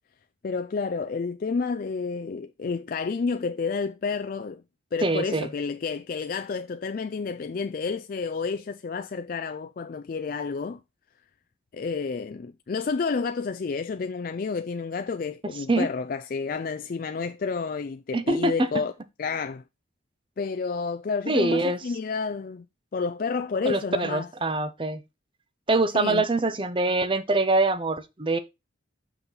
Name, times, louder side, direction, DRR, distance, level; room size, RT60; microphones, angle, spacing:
voice 1, 0.4-4.6 4.9-10.8 11.7-18.9 19.2-19.6 20.4-22.7 22.9-24.3 25.9-26.2, left 5 dB, 45° left, 0.3 m, -30 dB
voice 2, 5.0-5.5 15.7-15.9 18.1-18.7 21.3-21.8 23.6-25.0 25.7-28.4, right 2 dB, 25° right, 0.6 m, -24 dB
5.8 x 5.7 x 3.9 m
head